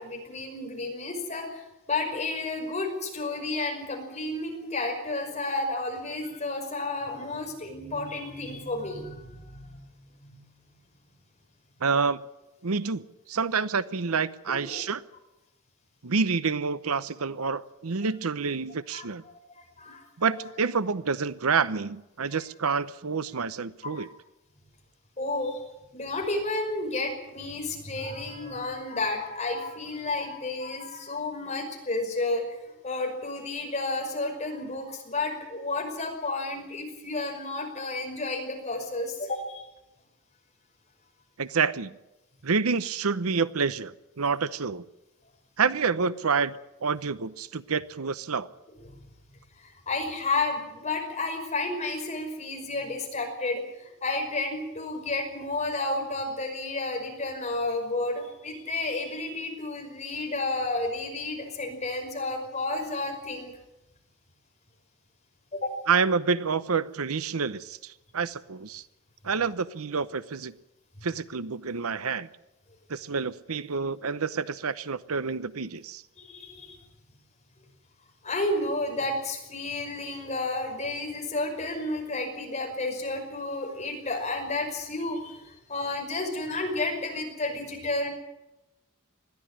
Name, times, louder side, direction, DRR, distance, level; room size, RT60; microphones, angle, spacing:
voice 1, 0.0-9.8 10.2-10.4 14.6-14.8 18.9-19.1 19.6-20.0 23.8-24.1 25.2-25.6 25.9-39.6 49.6-63.5 65.5-65.8 76.2-76.8 78.2-88.1, left 2 dB, 30° left, 2 dB, 5.5 m, -31 dB
voice 2, 11.8-12.2 12.6-15.0 16.0-19.2 20.2-24.1 41.4-41.9 42.4-44.9 45.6-48.5 65.9-68.8 69.2-70.5 71.0-72.3 72.9-76.0, right 5 dB, 80° right, 15 dB, 0.8 m, -28 dB
21.0 x 14.0 x 9.9 m, 0.95 s
head